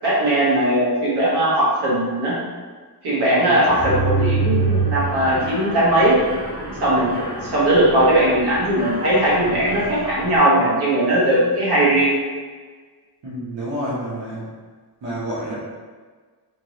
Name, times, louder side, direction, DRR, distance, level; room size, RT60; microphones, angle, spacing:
voice 1, 0.0-2.4 3.0-6.2 6.8-7.1 7.4-12.1, right 1 dB, 60° right, -8 dB, 1.3 m, -18 dB
voice 2, 3.1-3.5 13.2-14.4 15.0-15.5, equal, 90° right, -8 dB, 1.2 m, -29 dB
Mechanisms, 3.6-10.4, right 3 dB, 20° right, 0.6 m, -26 dB
3.4 x 2.9 x 3.1 m, 1.5 s
wide cardioid pair, 155°, 43 cm